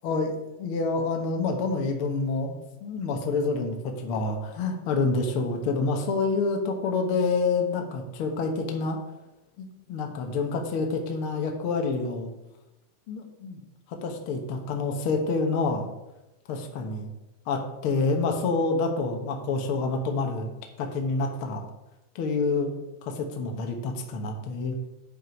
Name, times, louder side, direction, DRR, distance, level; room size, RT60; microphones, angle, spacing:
voice 1, 0.0-9.0 9.6-12.3 13.1-13.6 13.9-15.9 16.5-17.1 17.5-20.5 20.8-21.6 22.1-22.7 23.0-24.8, left 3 dB, 70° left, 3 dB, 1.3 m, -28 dB
9.5 x 5.6 x 5.2 m, 0.95 s
omnidirectional pair, 4.0 m